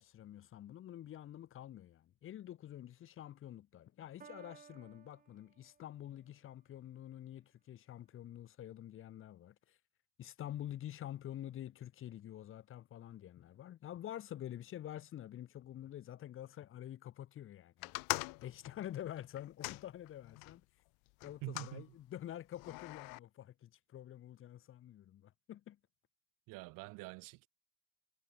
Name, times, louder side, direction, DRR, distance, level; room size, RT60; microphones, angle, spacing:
voice 1, 0.0-9.8 10.2-17.9 18.4-20.6 21.2-25.8, left 12 dB, 35° left, 3.2 m, -48 dB
Piano, 4.2-6.2, right 7 dB, 20° right, 5.3 m, -59 dB
sound 1, 17.8-20.6 21.2-21.8 22.5-23.2, left 30 dB, 70° left, 1.1 m, -42 dB
voice 2, 21.4-21.9 26.5-27.5, right 24 dB, 60° right, 1.9 m, -46 dB
cardioid pair, 180°, 36 cm